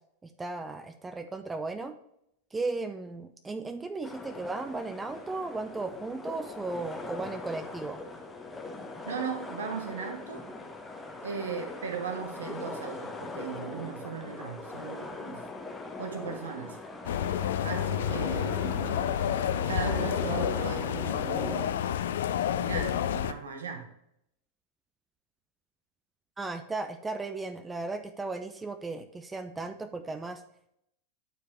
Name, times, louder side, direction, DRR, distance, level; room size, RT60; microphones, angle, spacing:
voice 1, 0.2-1.9 2.5-8.0 26.4-30.4, right 3 dB, 10° right, 8 dB, 0.5 m, -36 dB
sound 1, 4.0-21.7, left 2 dB, 10° left, 1.0 m, -40 dB
voice 2, 9.0-10.5 11.2-15.4 16.0-16.8 17.6-19.1 19.7-21.8 22.6-23.9, right 6 dB, 65° right, 6 dB, 1.2 m, -37 dB
sound 2, 17.0-23.3, left 10 dB, 60° left, 0.4 m, -29 dB
8.8 x 4.7 x 3.3 m, 0.77 s
figure-of-eight pair, 90°, 0 cm